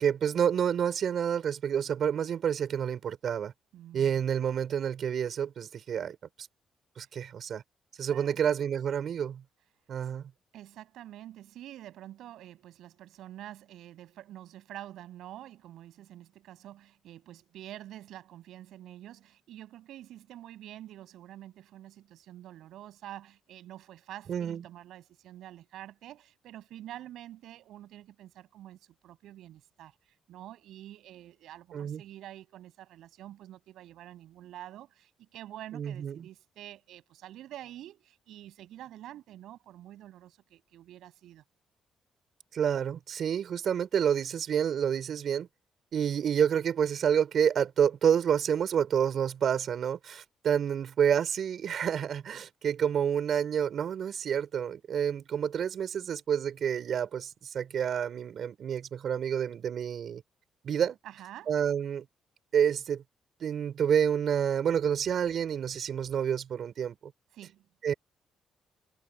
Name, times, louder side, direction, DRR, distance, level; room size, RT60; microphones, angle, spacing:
voice 1, 0.0-3.5 3.9-6.2 7.0-7.6 8.0-9.4 9.9-10.3 24.3-24.6 31.7-32.0 35.7-36.3 42.5-45.5 45.9-60.2 60.6-61.0 61.5-62.1 62.5-63.0 63.4-67.1 67.8-67.9, right 8 dB, 60° right, 5.5 m, -28 dB
voice 2, 3.7-4.2 8.0-8.4 10.5-41.4 61.0-61.5 67.3-67.7, right 13 dB, 80° right, 7.8 m, -47 dB
cardioid pair, 90°, 0 cm